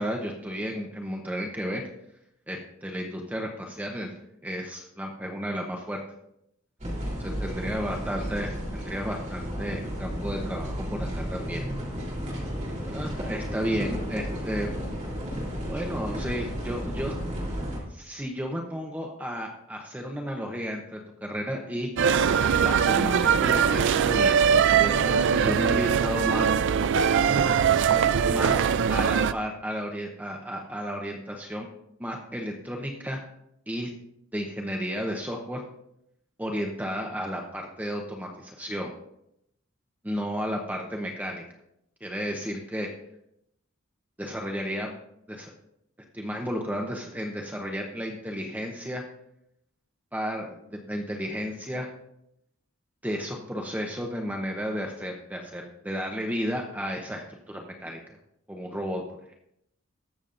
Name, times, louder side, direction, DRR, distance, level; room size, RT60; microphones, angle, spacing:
voice 1, 0.0-1.8 2.5-4.1 4.4-6.0 7.2-11.6 12.8-14.7 15.7-17.1 17.9-21.9 22.6-26.5 27.9-28.6 28.9-31.7 32.0-33.2 33.7-33.9 34.3-35.6 36.4-38.9 40.0-41.4 42.0-42.9 44.2-44.9 45.3-45.5 46.1-49.0 50.1-51.9 53.0-58.0 58.5-59.0, equal, 10° right, 1 dB, 0.9 m, -33 dB
sound 1, 6.8-17.8, equal, 35° right, 3.4 m, -33 dB
sound 2, 22.0-29.3, right 7 dB, 65° right, 0.4 m, -22 dB
20.5 x 7.1 x 2.6 m, 0.79 s
head